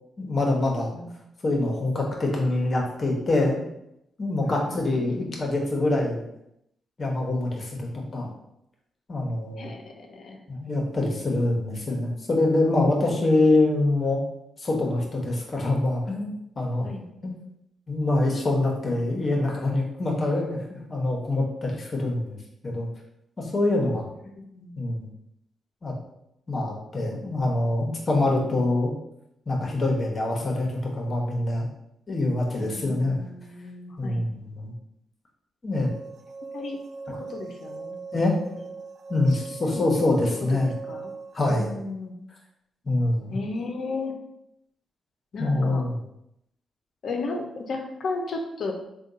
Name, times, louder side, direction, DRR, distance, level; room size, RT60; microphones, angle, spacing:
voice 1, 0.2-0.9 1.4-3.6 4.2-6.2 7.0-8.3 9.1-9.7 10.5-14.2 14.6-16.3 16.6-16.9 17.2-17.4 17.9-22.4 22.6-22.9 23.4-24.0 24.8-25.1 25.8-25.9 26.5-28.9 29.5-31.7 32.1-33.2 34.0-34.7 35.6-35.9 37.1-37.2 38.1-38.3 39.1-40.7 41.3-41.7 42.8-43.4 45.4-46.0, left 2 dB, 45° left, -1 dB, 1.1 m, -25 dB
voice 2, 4.4-5.6 9.6-10.4 16.8-17.1 24.4-24.9 32.6-34.2 36.5-36.8 37.3-38.3 39.3-39.4 39.6-39.9 40.2-40.6 40.9-41.1 41.5-42.1 43.3-44.1 45.3-45.8 47.0-48.7, left 3 dB, 65° left, 3 dB, 0.6 m, -34 dB
sound 1, 35.7-41.6, right 4 dB, 65° right, 0.4 m, -40 dB
3.6 x 2.3 x 3.9 m, 0.80 s
supercardioid pair, 55°, 0 cm